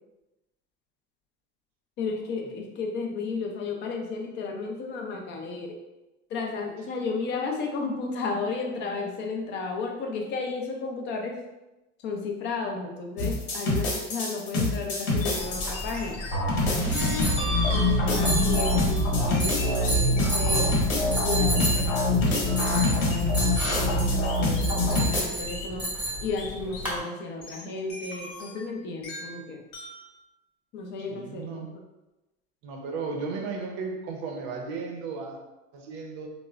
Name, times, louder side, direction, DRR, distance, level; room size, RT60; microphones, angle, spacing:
voice 1, 2.0-5.8 6.3-11.4 12.0-16.2 17.7-20.8 21.2-29.6 30.7-31.5, left 4 dB, 30° left, 2 dB, 0.4 m, -33 dB
sound 1, 13.2-15.9 16.3-25.2, left 1 dB, 65° left, 1.1 m, -25 dB
sound 2, 15.2-16.5 17.0-18.9 19.3-20.7 21.6-22.6 23.1-25.2 25.5-25.8 26.4-27.0 27.4-28.7 29.0-29.4 29.7-30.1, left 2 dB, 80° left, 0.7 m, -41 dB
sound 3, 15.4-27.0, equal, 5° right, 0.7 m, -32 dB
voice 2, 16.8-17.3 31.1-31.7 32.6-35.4 35.7-36.3, right 4 dB, 50° right, 2 dB, 0.6 m, -35 dB
2.9 x 2.0 x 2.4 m, 0.99 s
supercardioid pair, 120°, 36 cm